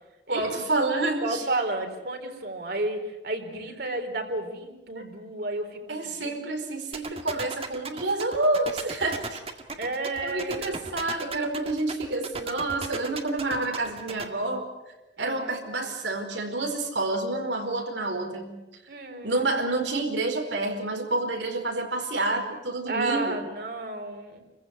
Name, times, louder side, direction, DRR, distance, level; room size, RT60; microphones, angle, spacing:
voice 1, 0.3-1.4 4.9-5.0 5.9-9.4 10.2-14.6 15.2-18.5 19.2-23.4, right 2 dB, 85° right, 3 dB, 4.8 m, -28 dB
voice 2, 1.2-6.4 9.8-10.7 11.2-11.4 15.2-15.5 18.9-19.4 22.9-24.4, right 2 dB, 60° right, 3 dB, 4.0 m, -32 dB
sound 1, 6.9-14.2, right 4 dB, 35° right, 1.9 m, -35 dB
28.5 x 15.5 x 9.7 m, 1.0 s
head